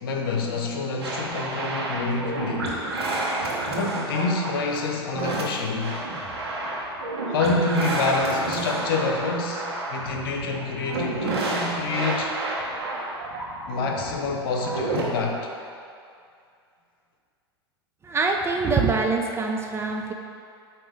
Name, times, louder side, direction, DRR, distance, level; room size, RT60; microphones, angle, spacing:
voice 1, 0.0-2.8 3.8-6.0 7.3-12.4 13.7-15.5, left 3 dB, 60° left, 2 dB, 0.9 m, -27 dB
sound 1, 1.0-15.0, right 2 dB, 70° right, 1.3 m, -30 dB
voice 2, 18.0-20.1, right 4 dB, 20° right, 2 dB, 0.5 m, -24 dB
8.7 x 3.0 x 4.9 m, 2.4 s
figure-of-eight pair, 90°, 14 cm